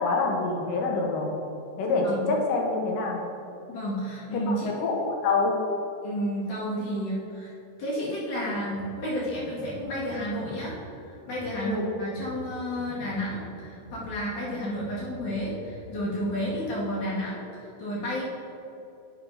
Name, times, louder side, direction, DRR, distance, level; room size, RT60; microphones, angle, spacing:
voice 1, 0.0-1.3 1.8-3.2 4.5-5.6 11.6-11.9, left 3 dB, 90° left, 0 dB, 2.8 m, -26 dB
voice 2, 3.7-4.7 6.0-7.5 7.8-18.2, equal, 65° left, -7 dB, 3.5 m, -31 dB
Drum kit, 8.3-16.6, right 1 dB, 50° right, 2.9 m, -46 dB
10.5 x 7.6 x 2.8 m, 2.9 s
omnidirectional pair, 3.8 m